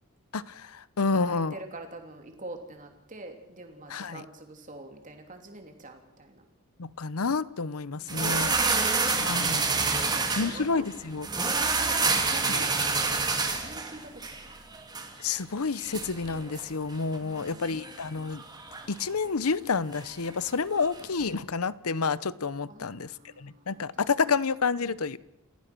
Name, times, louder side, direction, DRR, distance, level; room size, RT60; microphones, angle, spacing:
voice 1, 0.3-1.5 3.9-4.2 6.8-8.6 9.1-9.7 10.4-11.3 12.5-12.6 15.2-18.4 18.9-23.1 23.4-25.2, left 4 dB, 85° left, 18 dB, 0.8 m, -29 dB
voice 2, 1.0-6.4 7.9-9.6 9.9-11.1 11.4-12.7 13.2-14.5 17.2-17.8 22.7-23.8, right 2 dB, 35° right, 4 dB, 3.0 m, -46 dB
sound 1, 8.1-21.4, right 4 dB, 20° right, 2.6 m, -30 dB
29.5 x 15.5 x 6.2 m, 0.82 s
head